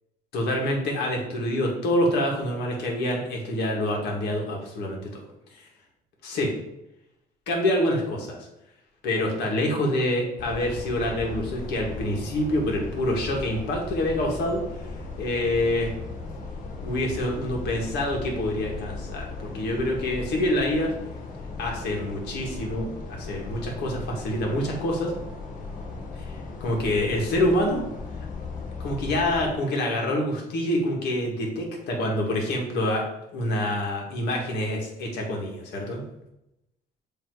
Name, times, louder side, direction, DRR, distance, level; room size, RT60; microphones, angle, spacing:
voice 1, 0.3-5.2 5.5-5.7 6.2-6.5 7.5-8.4 9.0-14.9 15.2-15.9 16.8-20.9 21.6-25.1 26.6-27.8 28.8-33.0 33.3-36.0, left 1 dB, 80° left, 0 dB, 1.9 m, -26 dB
sound 1, 10.4-29.5, left 3 dB, 55° left, 1.4 m, -37 dB
7.3 x 3.1 x 4.7 m, 0.88 s
cardioid pair, 110°, 17 cm